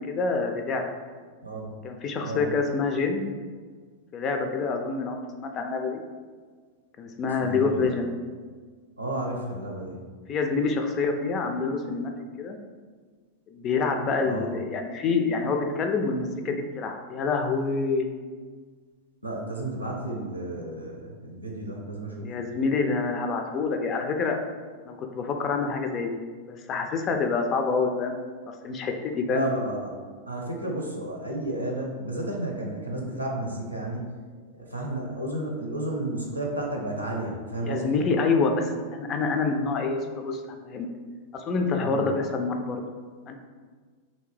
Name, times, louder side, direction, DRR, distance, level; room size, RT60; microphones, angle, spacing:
voice 1, 0.1-0.8 1.8-3.3 4.1-6.0 7.0-8.1 10.3-12.1 12.4-12.6 13.5-18.1 22.2-24.4 24.9-26.2 26.5-28.2 28.6-29.5 37.6-40.9 41.3-42.8 43.3-43.4, left 4 dB, 30° left, 4 dB, 0.4 m, -27 dB
voice 2, 7.4-7.9 9.0-10.0 14.2-14.5 19.2-22.2 29.3-30.0 30.3-34.1 34.6-38.0 41.8-42.0, right 1 dB, 85° right, -1 dB, 0.6 m, -32 dB
3.2 x 2.7 x 3.2 m, 1.5 s
figure-of-eight pair, 90°, 0 cm